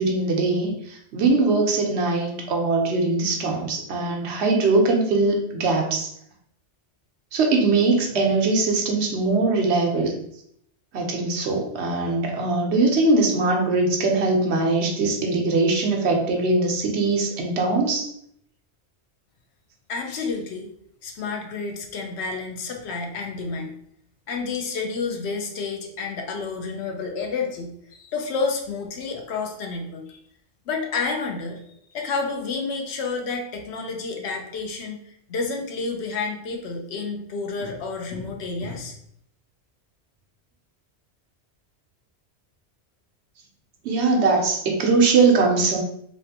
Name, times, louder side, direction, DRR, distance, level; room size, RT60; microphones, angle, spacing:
voice 1, 0.0-6.1 7.3-10.1 10.9-18.1 43.8-45.8, right 3 dB, 75° right, 1 dB, 0.9 m, -21 dB
voice 2, 19.9-20.7 21.0-23.7 24.3-30.2 30.7-31.6 31.9-39.0, left 4 dB, 75° left, 2 dB, 0.8 m, -30 dB
3.2 x 2.5 x 2.6 m, 0.70 s
omnidirectional pair, 1.1 m